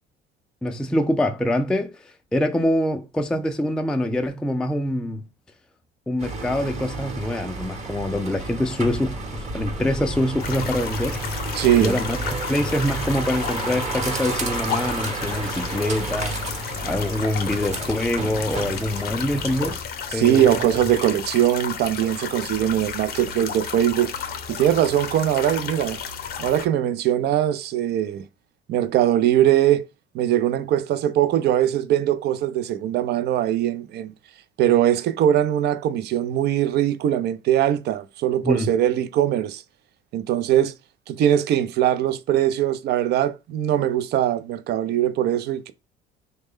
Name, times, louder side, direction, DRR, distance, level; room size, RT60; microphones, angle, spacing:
voice 1, 0.6-1.9 2.3-5.2 6.1-11.2 11.8-16.4 16.8-19.8 20.1-20.5 38.4-38.7, left 1 dB, 5° left, 0.3 m, -25 dB
sound 1, 6.2-19.8, right 2 dB, 35° right, 1.0 m, -31 dB
sound 2, 10.4-26.7, left 7 dB, 55° left, 0.6 m, -33 dB
voice 2, 11.6-12.0 20.1-24.1 24.5-26.0 26.4-28.2 28.7-29.9 30.1-34.1 34.6-39.6 40.1-40.7 41.1-45.7, right 11 dB, 60° right, 0.5 m, -21 dB
3.2 x 2.2 x 3.5 m
supercardioid pair, 95°, 20 cm